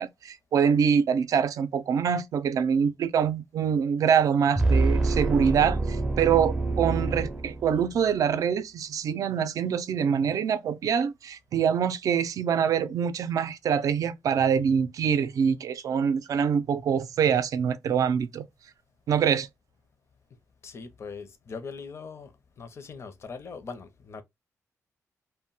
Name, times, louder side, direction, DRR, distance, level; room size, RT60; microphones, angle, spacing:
voice 1, 0.0-18.4 19.1-19.5, right 7 dB, 70° right, 0.4 m, -25 dB
sound 1, 4.6-8.0, right 2 dB, 10° right, 0.4 m, -26 dB
voice 2, 20.6-22.3 22.6-24.2, left 5 dB, 50° left, 0.5 m, -40 dB
2.1 x 2.1 x 3.7 m
cardioid pair, 105°, 6 cm